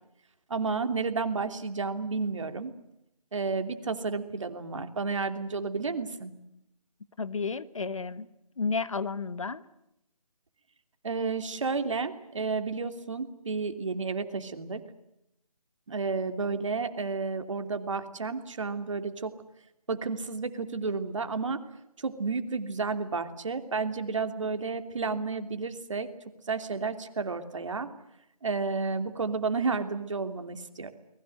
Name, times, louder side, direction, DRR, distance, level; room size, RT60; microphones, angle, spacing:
voice 1, 0.5-2.7 3.3-6.3 11.0-14.8 15.9-19.3 19.9-21.6 22.0-26.1 26.5-27.9 28.4-30.9, right 4 dB, 55° right, 9 dB, 2.9 m, -31 dB
voice 2, 7.2-8.3 8.6-9.6, left 4 dB, 55° left, 14 dB, 1.5 m, -31 dB
29.0 x 20.5 x 7.8 m, 0.83 s
figure-of-eight pair, 155°, 19 cm